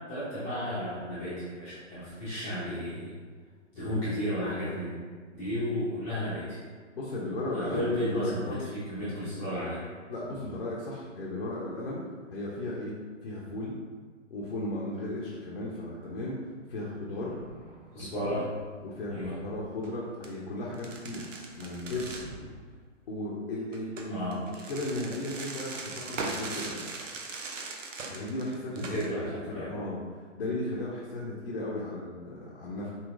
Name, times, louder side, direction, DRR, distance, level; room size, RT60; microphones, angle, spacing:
voice 1, 0.1-3.1 3.7-4.9 5.3-6.6 7.5-9.9 17.9-18.5 19.1-19.4 24.1-24.4 28.7-29.7, equal, 15° left, -13 dB, 0.8 m, -33 dB
voice 2, 6.9-8.6 10.1-12.0 12.3-12.9 13.2-13.8 14.3-16.4 16.7-17.4 18.0-18.3 18.8-21.2 21.6-22.2 23.1-26.8 28.1-30.0 30.3-32.9, left 1 dB, 50° left, -5 dB, 0.8 m, -35 dB
Thunder, 17.1-20.1 20.6-22.6, right 1 dB, 40° right, 0.7 m, -50 dB
sound 1, 19.7-19.9 20.2-20.3 20.7-22.3 23.7-29.1, right 3 dB, 70° right, 0.7 m, -39 dB
4.1 x 4.0 x 2.5 m, 1.5 s
figure-of-eight pair, 125°, 39 cm